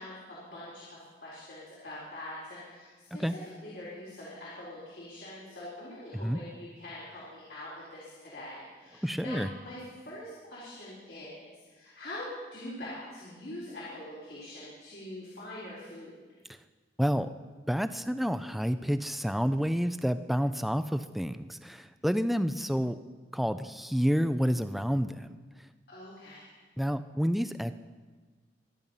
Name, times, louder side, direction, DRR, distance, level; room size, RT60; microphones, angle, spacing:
voice 1, 0.0-3.2 3.6-16.2 25.9-26.5, left 1 dB, 65° left, -7 dB, 4.3 m, -44 dB
voice 2, 9.0-9.5 17.0-17.3 17.7-23.0 23.3-25.4 26.8-27.7, equal, ahead, 11 dB, 0.4 m, -29 dB
24.5 x 9.0 x 5.5 m, 1.4 s
head